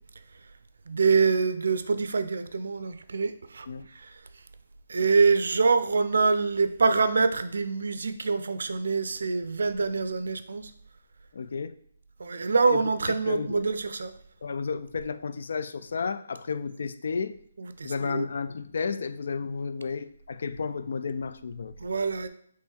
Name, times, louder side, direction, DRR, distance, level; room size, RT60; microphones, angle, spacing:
voice 1, 0.9-3.7 4.0-4.1 4.9-10.7 12.2-14.1 17.6-18.3 21.8-22.3, right 4 dB, 75° right, 0.4 m, -25 dB
voice 2, 11.3-11.8 12.7-12.8 13.2-13.6 14.4-17.4 17.8-21.7, left 5 dB, 65° left, 0.3 m, -32 dB
3.6 x 3.0 x 4.3 m
hypercardioid pair, 165°, 0 cm